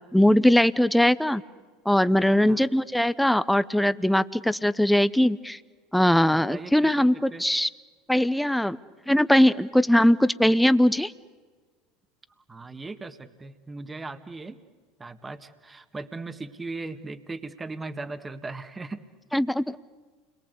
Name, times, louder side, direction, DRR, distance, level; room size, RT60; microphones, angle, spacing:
voice 1, 0.0-1.4 1.9-5.6 5.9-7.7 8.1-8.8 9.1-11.1 19.3-19.8, left 1 dB, 5° left, 15 dB, 0.9 m, -21 dB
voice 2, 6.3-6.9 7.3-7.4 12.5-14.6 15.0-19.0, right 3 dB, 20° right, 9 dB, 1.8 m, -38 dB
29.5 x 23.0 x 8.3 m, 1.4 s
hypercardioid pair, 85°, 0 cm